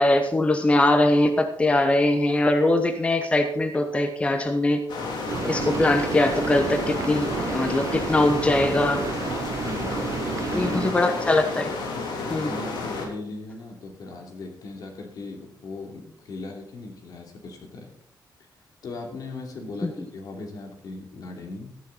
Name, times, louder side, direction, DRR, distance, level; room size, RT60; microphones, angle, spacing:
voice 1, 0.0-4.8 5.4-9.0 10.5-11.7 12.3-12.5 19.8-19.9, left 1 dB, 15° left, 6 dB, 1.0 m, -21 dB
sound 1, 4.9-13.1, left 3 dB, 85° left, 3.2 m, -31 dB
sound 2, 5.3-10.9, right 7 dB, 45° right, 0.5 m, -31 dB
voice 2, 9.6-10.8 12.2-17.9 18.8-21.8, left 2 dB, 55° left, 2 dB, 2.9 m, -38 dB
14.0 x 11.0 x 4.1 m, 0.72 s
wide cardioid pair, 175°, 8 cm